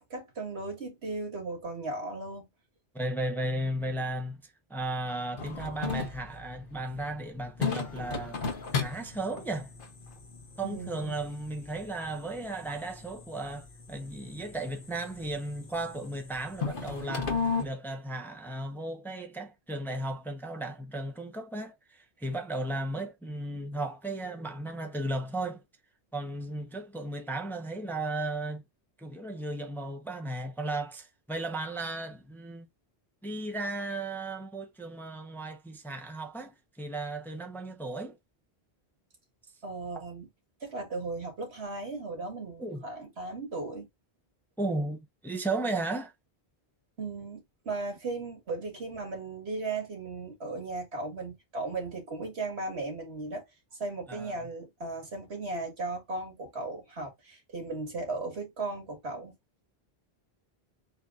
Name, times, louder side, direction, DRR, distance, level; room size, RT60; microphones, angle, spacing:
voice 1, 0.1-2.5 10.6-11.2 39.6-40.3 40.6-43.9 47.0-53.4 53.8-59.3, right 3 dB, 85° right, 2.0 m, -36 dB
voice 2, 2.9-8.4 8.7-9.7 10.6-17.3 17.6-25.6 26.1-28.6 29.0-32.7 33.2-38.2 39.9-40.1 42.6-42.8 44.6-46.1 54.1-54.4, right 2 dB, ahead, 0.7 m, -35 dB
sound 1, 5.4-17.7, left 5 dB, 55° left, 1.1 m, -37 dB
6.8 x 2.7 x 2.4 m
omnidirectional pair, 1.1 m